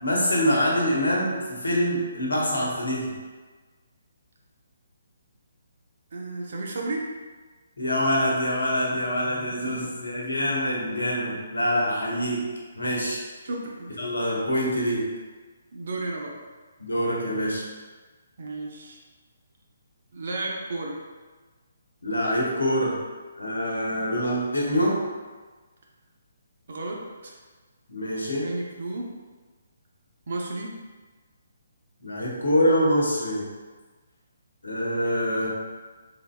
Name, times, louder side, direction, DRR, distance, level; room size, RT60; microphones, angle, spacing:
voice 1, 0.0-3.0 7.8-12.4 12.7-13.2 14.0-15.0 16.8-17.6 22.0-23.0 23.4-25.0 27.9-28.5 32.0-33.4 34.6-35.5, equal, 75° left, -3 dB, 1.1 m, -25 dB
voice 2, 6.1-7.1 9.6-9.9 13.4-14.1 15.7-16.4 18.4-19.0 20.1-21.0 26.7-27.3 28.4-29.2 30.3-30.7, right 2 dB, 55° right, -1 dB, 0.7 m, -33 dB
4.0 x 3.9 x 2.3 m, 1.4 s
figure-of-eight pair, 140°, 0 cm